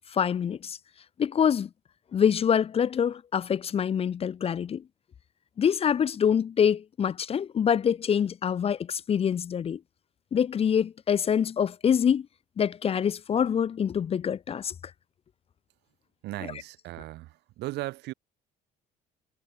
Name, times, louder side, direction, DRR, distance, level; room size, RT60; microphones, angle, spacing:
voice 1, 0.1-0.8 1.2-1.7 2.1-4.8 5.6-9.8 10.3-12.3 12.6-14.7, left 8 dB, 35° left, 0.6 m, -25 dB
voice 2, 16.2-18.1, right 18 dB, 85° right, 2.8 m, -37 dB
cardioid pair, 110°, 17 cm